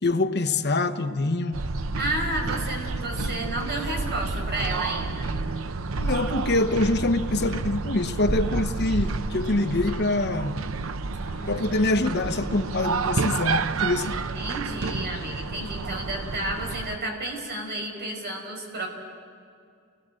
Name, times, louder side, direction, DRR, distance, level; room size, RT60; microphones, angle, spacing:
voice 1, 0.0-1.6 6.0-10.6 11.5-14.2, left 2 dB, 55° left, 1.1 m, -25 dB
sound 1, 1.5-17.0, right 3 dB, 90° right, 0.7 m, -30 dB
voice 2, 2.0-5.4 11.1-11.8 14.0-18.9, right 1 dB, 55° right, 5.3 m, -32 dB
30.0 x 20.0 x 7.7 m
head